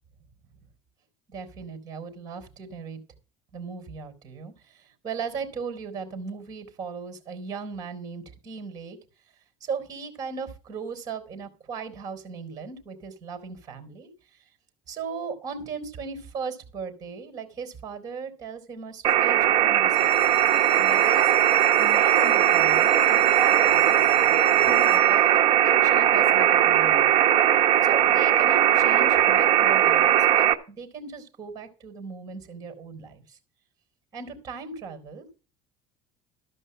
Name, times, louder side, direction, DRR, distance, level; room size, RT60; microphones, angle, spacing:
voice 1, 1.3-3.0 3.5-9.0 9.6-14.1 14.4-14.5 14.9-20.3 20.8-21.3 21.8-25.2 25.6-27.2 27.8-33.4 34.1-35.3, right 5 dB, 25° right, 6 dB, 3.7 m, -37 dB
sound 1, 19.0-30.5, right 11 dB, 40° right, 1.1 m, -19 dB
sound 2, 19.8-25.5 26.2-26.7 27.1-27.2 27.4-27.5 27.9-28.0, left 2 dB, 60° left, 7.7 m, -45 dB
13.5 x 5.4 x 7.7 m, 0.34 s
cardioid pair, 155°, 14 cm